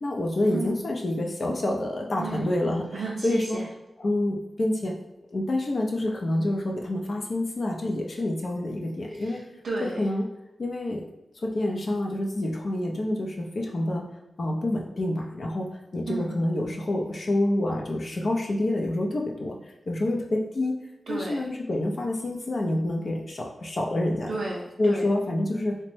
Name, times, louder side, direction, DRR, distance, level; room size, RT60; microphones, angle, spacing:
voice 1, 0.0-3.6 4.0-4.9 5.3-9.4 10.0-10.2 10.6-11.0 11.4-14.0 14.4-20.8 21.1-24.3 24.8-25.8, left 1 dB, 60° left, 0 dB, 0.4 m, -27 dB
voice 2, 2.2-2.5 2.9-3.6 9.2-10.0 16.1-16.4 21.1-21.4 24.3-25.1, right 3 dB, 85° right, -4 dB, 0.4 m, -33 dB
2.9 x 2.1 x 3.1 m, 0.96 s
cardioid pair, 65°, 0 cm